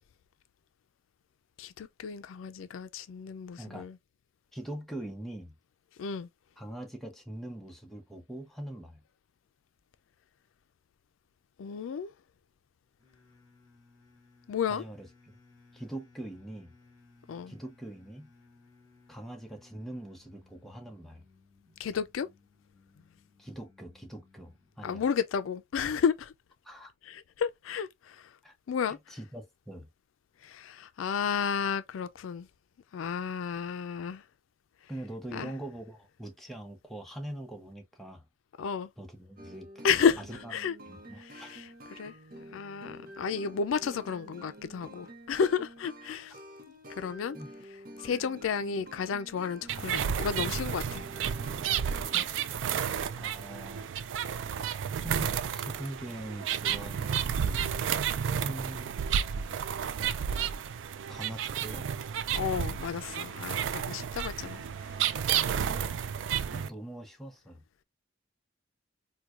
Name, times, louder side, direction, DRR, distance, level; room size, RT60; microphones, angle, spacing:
voice 1, 1.6-3.9 6.0-6.3 11.6-12.1 14.5-14.8 17.3-17.5 21.8-22.3 24.8-26.3 27.1-28.3 28.7-29.0 30.4-32.5 32.9-34.2 35.3-35.5 38.6-38.9 39.8-40.2 40.5-40.8 41.3-46.3 46.9-47.4 48.0-51.1 58.3-58.4 62.3-64.6, left 6 dB, 90° left, 0.4 m, -32 dB
voice 2, 4.5-5.5 6.6-9.0 14.7-15.4 15.7-16.7 17.5-18.3 19.1-21.3 23.4-25.1 26.6-26.9 28.4-28.6 28.8-29.9 34.9-38.3 39.0-39.9 40.3-40.5 40.8-41.5 47.4-47.5 52.1-52.3 53.1-53.9 54.9-57.7 58.4-59.6 61.1-61.9 65.8-66.1 66.5-67.6, right 1 dB, ahead, 0.7 m, -43 dB
sound 1, 13.0-24.9, left 3 dB, 20° left, 2.5 m, -61 dB
sound 2, 39.4-52.2, right 1 dB, 45° right, 0.7 m, -49 dB
sound 3, 49.7-66.7, right 8 dB, 70° right, 0.3 m, -32 dB
4.5 x 2.2 x 2.4 m
head